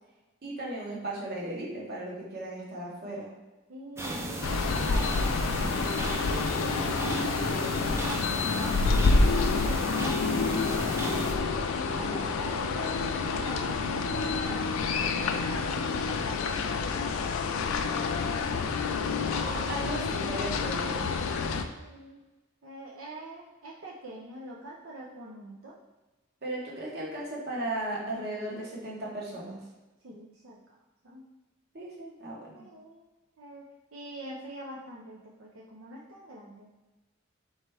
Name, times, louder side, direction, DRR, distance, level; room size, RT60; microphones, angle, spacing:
voice 1, 0.4-3.3 11.9-12.3 19.3-21.0 26.4-29.6 31.7-32.4, right 1 dB, 55° right, -4 dB, 1.2 m, -36 dB
voice 2, 3.7-5.5 6.0-6.6 8.5-11.3 11.7-14.8 15.2-19.4 21.7-22.2 22.6-25.8 30.0-30.6 31.0-31.2 32.5-33.0 33.4-36.7, right 1 dB, 80° right, -4 dB, 0.6 m, -45 dB
sound 1, 4.0-11.3, right 1 dB, 15° right, 0.4 m, -36 dB
sound 2, 4.4-21.6, left 4 dB, 80° left, 0.4 m, -28 dB
4.3 x 3.1 x 3.4 m, 1.1 s
head